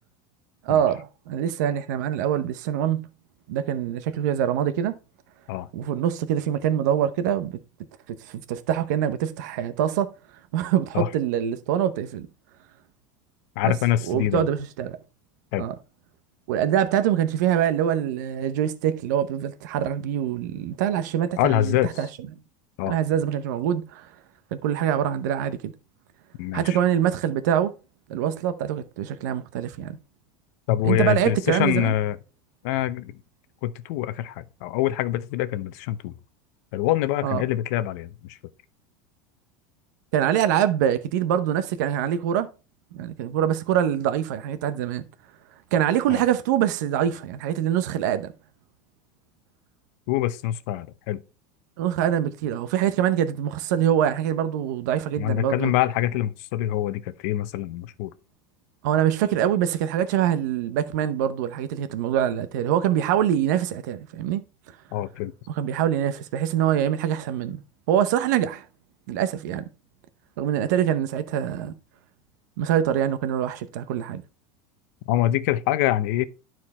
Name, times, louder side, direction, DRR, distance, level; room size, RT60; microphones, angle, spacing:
voice 1, 0.6-3.1 3.5-5.0 5.7-7.6 8.1-10.1 10.5-12.3 13.6-13.7 14.1-15.0 15.6-15.7 16.5-22.1 22.9-24.1 24.5-25.7 26.5-27.7 28.1-30.0 30.8-31.9 37.2-37.4 40.1-42.5 42.9-45.1 45.7-48.3 51.8-55.7 58.8-64.4 65.5-67.6 67.9-68.7 69.1-69.6 70.4-71.7 72.6-74.2, right 10 dB, 70° right, 0.8 m, -24 dB
voice 2, 13.6-14.5 15.5-15.7 21.4-21.9 22.8-23.0 26.4-26.8 30.7-32.2 32.6-33.1 33.6-36.1 36.7-38.4 46.1-46.3 50.1-51.2 55.2-58.1 64.9-65.3 75.1-76.2, left 13 dB, 60° left, 0.8 m, -25 dB
12.0 x 4.6 x 4.2 m
supercardioid pair, 165°, 10 cm